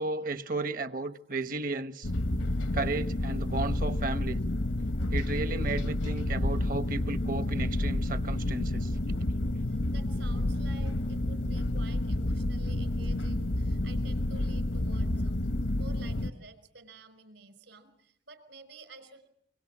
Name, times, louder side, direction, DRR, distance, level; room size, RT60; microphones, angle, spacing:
voice 1, 0.0-2.1 2.7-4.4 5.1-9.2, right 3 dB, 45° right, 1.1 m, -34 dB
sound 1, 2.0-16.3, left 1 dB, 80° left, 1.0 m, -30 dB
voice 2, 9.6-19.3, right 3 dB, 70° right, 5.2 m, -51 dB
28.5 x 24.5 x 7.3 m
head